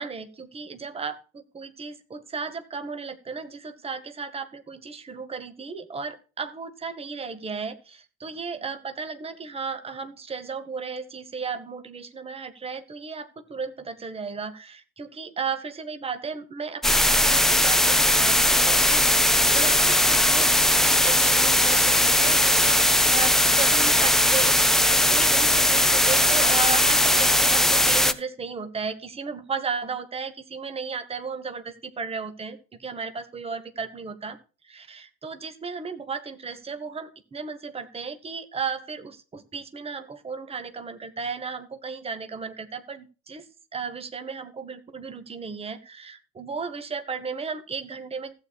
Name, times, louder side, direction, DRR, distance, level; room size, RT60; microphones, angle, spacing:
voice 1, 0.0-24.6 24.9-34.4 34.6-43.5 43.7-48.3, right 5 dB, 15° right, 10 dB, 1.2 m, -35 dB
sound 1, 16.8-28.1, left 1 dB, ahead, 0.4 m, -19 dB
15.5 x 8.7 x 2.4 m, 0.33 s
figure-of-eight pair, 65°, 39 cm